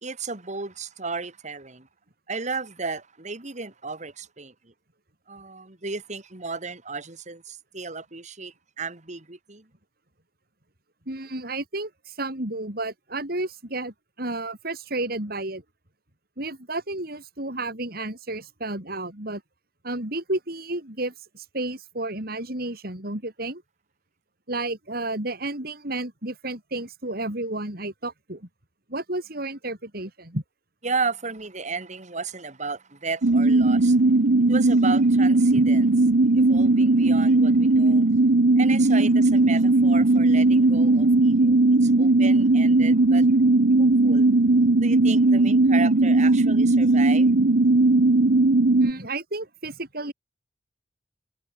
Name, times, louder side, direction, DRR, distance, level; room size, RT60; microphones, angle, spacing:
voice 1, 0.0-1.9 2.3-4.7 5.3-9.7 30.8-34.0 34.5-35.9 36.3-38.1 38.6-43.3 43.8-44.3 44.8-47.3, right 4 dB, 45° right, 2.6 m, -34 dB
voice 2, 11.1-15.6 16.4-19.4 19.8-23.6 24.5-28.5 28.9-30.4 48.8-50.1, right 2 dB, 60° right, 5.3 m, -32 dB
sound 1, 33.2-48.9, right 2 dB, 80° right, 0.9 m, -18 dB
head